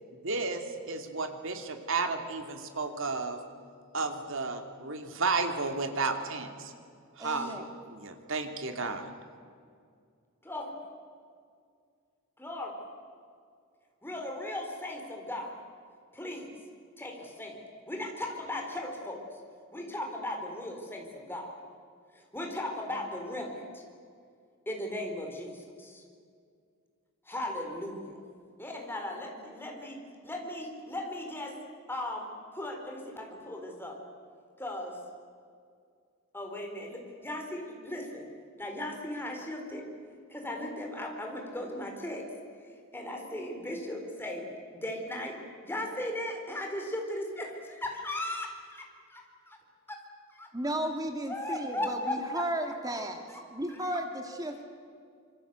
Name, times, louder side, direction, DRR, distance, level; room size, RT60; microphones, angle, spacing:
voice 1, 0.2-3.4 3.9-6.7 7.2-7.5 7.9-9.1, right 3 dB, 60° right, 6 dB, 2.7 m, -32 dB
voice 2, 7.2-7.7 50.5-53.2 53.5-54.6, right 1 dB, 15° right, 4 dB, 2.1 m, -34 dB
voice 3, 12.4-12.7 14.0-15.6 16.1-16.5 17.0-17.6 17.9-19.2 19.7-21.5 22.1-23.8 24.7-26.0 27.3-28.2 28.6-31.6 31.9-34.0 34.6-35.0 36.3-38.3 38.6-39.8 40.3-42.3 42.9-44.5 44.7-45.4 45.6-48.8 49.1-49.6 49.9-50.0 50.3-50.5 51.3-52.7 53.8-54.0, left 1 dB, 10° left, 2 dB, 4.1 m, -37 dB
26.0 x 24.5 x 8.2 m, 2.2 s
head